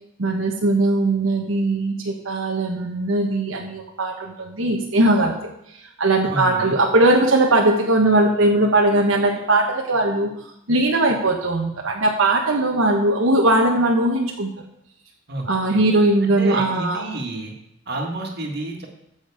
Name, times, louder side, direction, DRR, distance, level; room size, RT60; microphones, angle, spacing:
voice 1, 0.2-5.3 6.0-10.3 10.7-14.5 15.4-17.1, right 2 dB, 80° right, 0 dB, 1.3 m, -19 dB
voice 2, 6.2-6.8 15.3-15.8 16.2-17.5 17.9-18.9, right 2 dB, 55° right, 2 dB, 1.9 m, -30 dB
14.0 x 6.3 x 4.9 m, 0.79 s
head